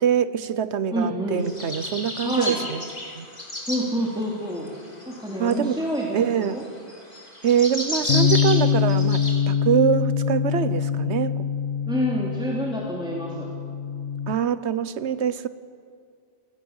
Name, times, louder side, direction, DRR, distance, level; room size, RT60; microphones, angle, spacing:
voice 1, 0.0-2.8 3.1-3.3 5.4-5.8 6.1-6.6 7.4-11.4 14.3-15.5, right 8 dB, 75° right, 14 dB, 1.2 m, -24 dB
voice 2, 0.9-1.4 2.2-2.6 3.6-4.7 5.1-6.6 11.9-13.5, equal, 5° right, -4 dB, 2.8 m, -27 dB
sound 1, 1.4-3.8 4.6-9.3, left 1 dB, 35° left, 4.1 m, -31 dB
Bass guitar, 8.1-14.3, left 7 dB, 75° left, 1.2 m, -24 dB
28.5 x 17.5 x 7.3 m, 2.3 s
omnidirectional pair, 1.2 m